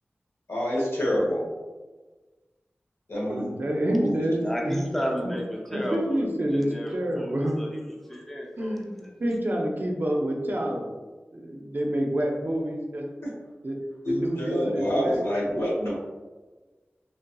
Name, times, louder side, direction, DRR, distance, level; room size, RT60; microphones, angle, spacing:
voice 1, 0.5-1.5 3.1-3.5 3.8-4.1 14.0-16.0, equal, 85° left, -5 dB, 1.0 m, -27 dB
voice 2, 3.3-4.8 5.2-5.3 5.7-7.6 8.6-10.9 11.3-13.0 13.6-13.8 14.1-15.2, right 1 dB, 50° right, 0 dB, 0.5 m, -28 dB
voice 3, 4.4-6.3 6.5-9.2, equal, 5° left, -1 dB, 0.5 m, -33 dB
3.2 x 2.7 x 2.2 m, 1.3 s
wide cardioid pair, 75°, 4 cm